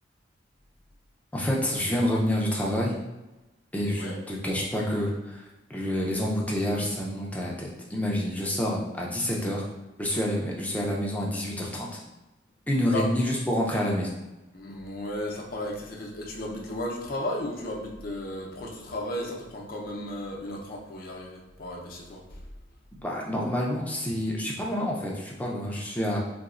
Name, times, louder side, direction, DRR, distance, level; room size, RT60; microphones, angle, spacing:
voice 1, 1.3-2.9 3.7-5.4 5.7-9.6 10.0-11.9 12.7-14.1 23.0-26.2, equal, 10° left, -3 dB, 0.5 m, -28 dB
voice 2, 14.5-22.4, left 1 dB, 55° left, -1 dB, 0.6 m, -34 dB
4.0 x 2.2 x 2.4 m, 1.1 s
head